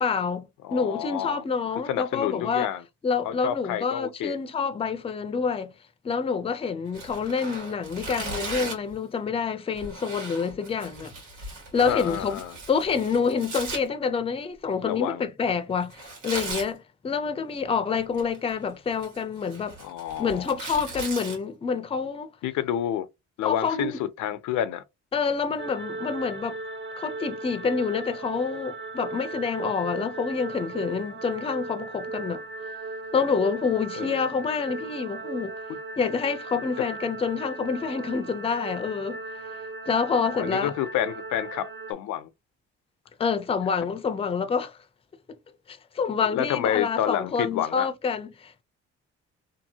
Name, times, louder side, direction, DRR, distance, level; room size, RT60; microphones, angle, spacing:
voice 1, 0.0-2.7 3.0-5.7 6.0-11.1 11.7-12.3 12.7-19.8 20.2-22.3 23.4-23.9 25.1-26.6 27.0-32.4 33.1-35.5 36.0-39.2 39.9-40.7 43.2-44.7 45.7-48.6, left 5 dB, 20° left, 0.4 m, -27 dB
voice 2, 0.6-1.4 1.8-2.8 3.2-4.4 11.8-12.6 14.8-15.2 19.8-20.6 22.4-23.1 23.4-24.8 34.0-34.3 40.1-42.3 46.2-47.9, left 11 dB, 80° left, 0.5 m, -29 dB
Tearing, 6.9-8.9 9.8-13.8 15.9-16.7 18.0-18.5 18.9-21.4, right 3 dB, 85° right, 1.6 m, -37 dB
sound 1, 25.6-41.9, right 3 dB, 40° right, 0.8 m, -37 dB
2.7 x 2.7 x 2.7 m
cardioid pair, 90°, 30 cm